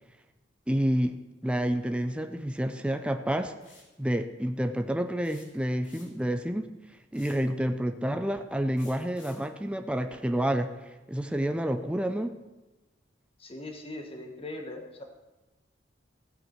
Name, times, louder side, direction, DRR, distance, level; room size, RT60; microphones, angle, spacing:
voice 1, 0.7-1.2 1.4-3.5 4.0-6.7 7.1-10.7 11.1-12.4, equal, 5° right, 7 dB, 0.5 m, -29 dB
sound 1, 3.6-3.9 5.2-6.3 7.1-7.5 8.8-9.5, left 4 dB, 80° left, 2.8 m, -54 dB
voice 2, 13.4-15.0, left 2 dB, 30° left, 3 dB, 1.5 m, -40 dB
15.0 x 8.4 x 4.5 m, 1.1 s
head